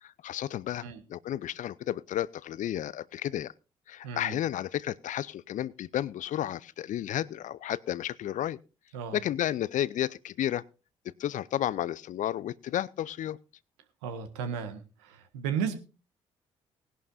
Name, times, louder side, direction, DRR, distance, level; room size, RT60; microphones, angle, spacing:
voice 1, 0.0-3.5 3.9-8.6 9.1-10.6 11.2-13.4, left 12 dB, 55° left, 22 dB, 0.5 m, -32 dB
voice 2, 4.0-4.4 8.9-9.2 14.0-15.8, right 7 dB, 80° right, 8 dB, 1.5 m, -34 dB
19.0 x 11.0 x 2.6 m, 0.32 s
hypercardioid pair, 45°, 15 cm